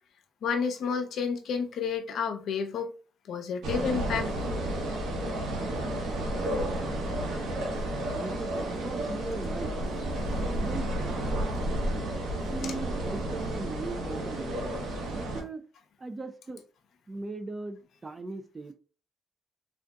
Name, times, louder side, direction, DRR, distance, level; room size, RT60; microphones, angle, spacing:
voice 1, 0.4-2.9 3.3-4.3, left 6 dB, 70° left, 0.6 m, -30 dB
sound 1, 3.6-15.4, right 1 dB, 85° right, 0.9 m, -31 dB
voice 2, 8.1-9.8 10.1-11.4 12.5-15.7 16.0-16.6 17.1-18.7, right 3 dB, 25° right, 0.4 m, -39 dB
3.6 x 2.6 x 2.2 m
cardioid pair, 90°, 0 cm